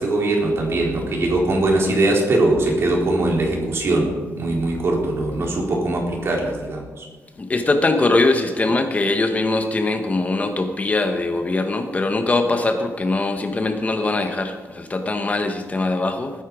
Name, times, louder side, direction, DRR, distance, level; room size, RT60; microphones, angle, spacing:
voice 1, 0.0-4.1 4.4-7.1, right 2 dB, 50° right, -1 dB, 4.1 m, -21 dB
voice 2, 7.4-16.3, left 2 dB, 25° left, 6 dB, 1.2 m, -21 dB
19.5 x 10.0 x 4.9 m, 1.4 s
wide cardioid pair, 130°, 6 cm